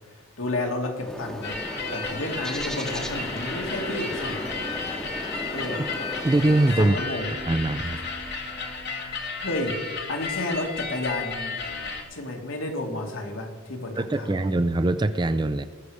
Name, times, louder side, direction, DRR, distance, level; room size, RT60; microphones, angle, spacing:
voice 1, 0.4-1.6 1.9-4.5 5.5-5.8 6.8-7.3 9.4-11.6 12.1-14.5, left 2 dB, 75° left, 2 dB, 1.9 m, -31 dB
Bird, 1.0-7.0, equal, 5° left, 1.0 m, -36 dB
sound 1, 1.4-12.0, left 4 dB, 50° left, 1.6 m, -33 dB
voice 2, 6.2-7.0 7.5-8.0 14.0-15.7, right 2 dB, 20° right, 12 dB, 0.4 m, -22 dB
19.0 x 6.7 x 4.8 m, 1.5 s
head